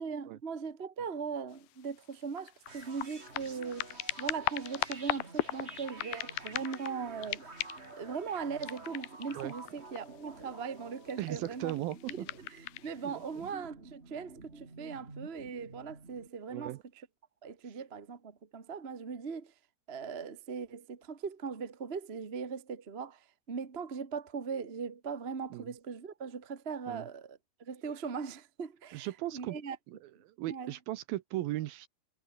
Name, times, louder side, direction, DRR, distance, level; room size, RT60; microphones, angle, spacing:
voice 1, 0.0-7.4 8.0-11.7 12.1-16.7 17.4-19.5 19.9-29.8 30.5-30.7, right 5 dB, 50° right, 0.7 m, -39 dB
sound 1, 1.6-1.7 2.0-7.0 7.2-8.0 8.6-10.2 11.0-12.9 13.5-13.6, left 19 dB, 80° left, 2.1 m, -38 dB
sound 2, 2.7-16.3, right 3 dB, 15° right, 3.0 m, -50 dB
voice 2, 11.2-12.3 13.0-13.5 16.5-16.8 17.7-17.8 25.5-25.7 26.9-27.1 28.9-29.6 29.9-31.9, right 15 dB, 75° right, 2.4 m, -38 dB
omnidirectional pair, 4.8 m